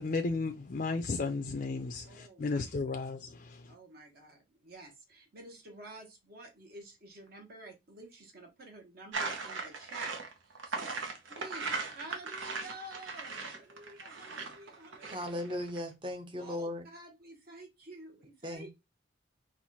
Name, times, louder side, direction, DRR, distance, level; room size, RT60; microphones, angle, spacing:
voice 1, 0.0-3.6, left 3 dB, 40° left, 0.4 m, -34 dB
voice 2, 2.0-2.6 3.7-10.1 10.6-15.3 16.4-18.7, right 1 dB, 50° right, 1.3 m, -50 dB
sound 1, 9.1-15.8, right 4 dB, 80° right, 1.1 m, -38 dB
voice 3, 15.1-16.8 18.4-18.7, left 1 dB, 25° right, 0.9 m, -37 dB
4.5 x 2.5 x 4.1 m
head